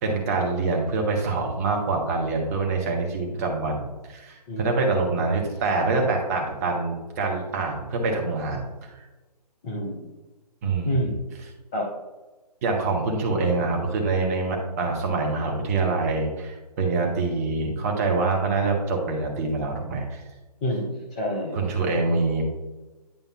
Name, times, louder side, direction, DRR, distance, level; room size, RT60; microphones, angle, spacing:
voice 1, 0.0-3.8 4.0-9.0 10.6-11.0 12.6-20.2 21.5-22.4, right 3 dB, 20° right, 0 dB, 1.0 m, -25 dB
voice 2, 9.6-10.1 10.9-11.1 11.7-11.8 20.6-21.6, equal, 10° left, -4 dB, 0.4 m, -28 dB
10.0 x 5.2 x 2.4 m, 1.2 s
figure-of-eight pair, 140°, 21 cm